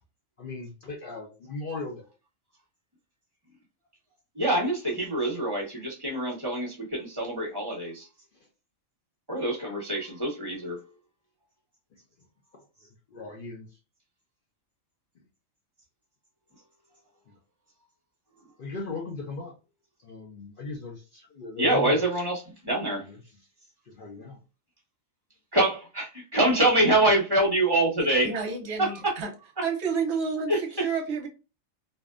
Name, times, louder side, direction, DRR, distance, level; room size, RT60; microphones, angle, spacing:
voice 1, 0.4-2.0 13.1-13.7 17.3-17.4 18.6-19.5 20.0-22.0 23.0-23.2 23.9-24.4, left 3 dB, 60° left, 0.6 m, -38 dB
voice 2, 4.3-8.1 9.3-10.8 21.6-23.0 25.5-28.4 28.8-29.2 30.5-30.9, right 1 dB, 20° right, 1.0 m, -25 dB
voice 3, 28.2-29.3 29.6-31.3, right 5 dB, 60° right, 0.9 m, -30 dB
2.6 x 2.1 x 2.3 m
omnidirectional pair, 1.4 m